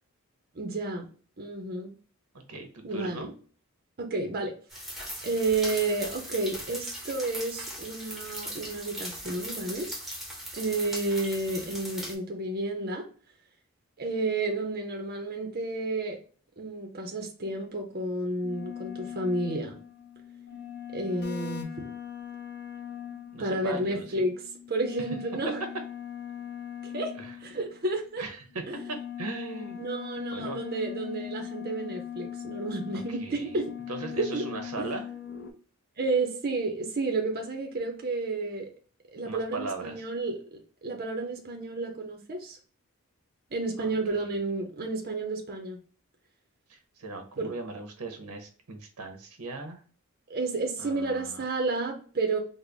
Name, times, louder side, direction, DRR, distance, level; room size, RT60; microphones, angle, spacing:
voice 1, 0.5-1.1 1.4-1.9 2.8-3.3 4.0-4.5 5.2-9.9 10.5-13.0 14.0-16.2 16.6-19.8 20.9-21.9 23.4-24.4 24.7-25.6 26.8-27.1 27.4-28.2 28.7-28.8 29.8-33.7 34.2-34.5 34.8-34.9 36.0-38.7 39.1-40.4 40.8-42.6 43.5-45.8 47.4-47.5 50.3-52.4, right 2 dB, 45° right, 3 dB, 0.6 m, -31 dB
voice 2, 2.5-3.3 23.3-24.2 27.2-27.3 28.2-28.4 29.2-29.8 30.3-30.6 33.1-33.4 33.9-35.1 39.2-40.0 43.8-44.2 46.7-49.8 50.8-51.4, right 3 dB, 90° right, 6 dB, 0.8 m, -39 dB
sound 1, 4.7-12.1, equal, ahead, 0.8 m, -39 dB
sound 2, 17.4-17.6 18.4-27.9 28.5-35.5, left 9 dB, 50° left, 0.7 m, -40 dB
3.8 x 2.1 x 3.3 m, 0.41 s
head